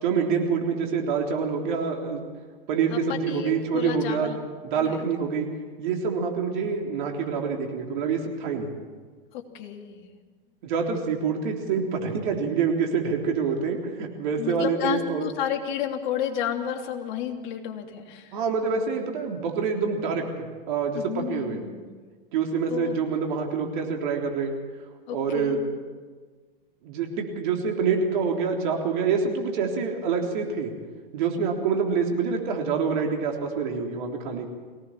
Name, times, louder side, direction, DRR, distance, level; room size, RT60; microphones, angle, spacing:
voice 1, 0.0-2.2 2.7-4.4 4.6-5.5 5.8-8.7 10.6-15.2 18.3-21.6 22.3-24.6 25.1-25.6 26.8-30.7 31.1-34.5, right 5 dB, 55° right, 2 dB, 3.7 m, -26 dB
voice 2, 2.9-4.4 4.8-5.0 9.3-10.1 14.4-18.4 20.9-21.8 22.7-22.9 25.1-25.8, left 9 dB, 55° left, 2 dB, 3.2 m, -32 dB
23.0 x 18.0 x 7.5 m, 1.5 s
hypercardioid pair, 105°, 29 cm